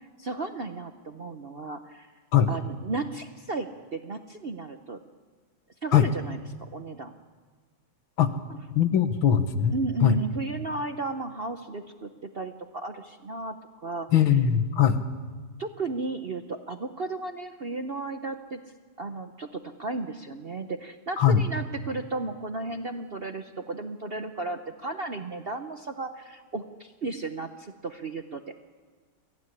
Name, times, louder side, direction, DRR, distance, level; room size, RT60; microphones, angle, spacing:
voice 1, 0.0-2.1 2.5-5.0 5.8-6.4 6.7-7.1 9.7-14.1 15.6-18.6 19.0-28.4, right 3 dB, 45° right, 7 dB, 0.7 m, -34 dB
voice 2, 8.8-9.7 10.0-10.2 14.1-15.0 21.2-21.4, left 9 dB, 90° left, 10 dB, 2.0 m, -20 dB
22.0 x 15.5 x 9.8 m, 1.5 s
omnidirectional pair, 2.1 m